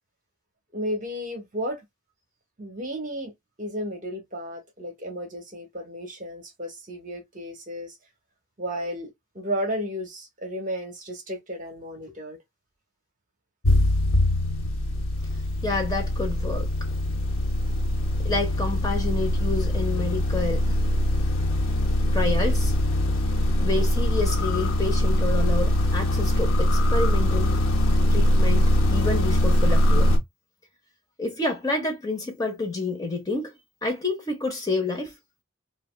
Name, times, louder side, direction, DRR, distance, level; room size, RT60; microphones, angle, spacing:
voice 1, 0.7-1.8 2.6-3.3 3.6-8.0 8.6-12.4, equal, 40° right, 1.0 m, -33 dB
sound 1, 13.6-30.2, left 1 dB, 85° left, 0.7 m, -22 dB
voice 2, 15.6-16.7 18.2-20.8 22.1-22.7 23.6-27.6 28.1-30.1 31.2-33.5 33.8-35.1, left 3 dB, 20° left, 0.8 m, -29 dB
3.3 x 2.4 x 2.2 m
head